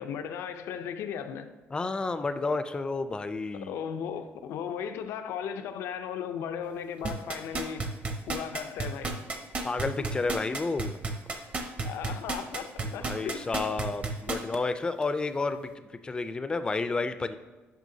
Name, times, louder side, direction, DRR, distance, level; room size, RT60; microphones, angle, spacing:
voice 1, 0.0-1.5 3.6-7.9 8.3-9.2 11.8-13.5 14.3-14.4, left 8 dB, 90° left, 0.6 m, -36 dB
voice 2, 1.7-3.7 9.6-11.0 12.8-17.4, left 3 dB, 20° left, 0.4 m, -31 dB
sound 1, 7.0-14.6 15.0-15.1, right 3 dB, 35° right, 0.8 m, -32 dB
9.1 x 5.7 x 2.7 m
cardioid pair, 140°, 4 cm